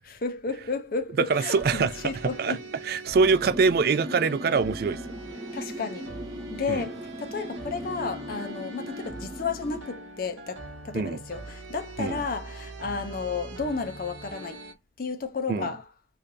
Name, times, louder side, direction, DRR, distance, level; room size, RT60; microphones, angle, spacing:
voice 1, 0.0-2.6 5.5-6.1 6.5-14.7 15.0-15.9, left 4 dB, 50° left, 0.5 m, -32 dB
voice 2, 1.2-2.6 2.8-5.0 6.7-6.9 10.9-11.2 12.0-12.2 15.5-15.7, right 4 dB, 50° right, 0.3 m, -24 dB
sound 1, 1.3-14.7, right 2 dB, 80° right, 0.8 m, -42 dB
sound 2, 3.2-9.8, equal, 20° right, 0.7 m, -39 dB
3.3 x 2.7 x 2.6 m
head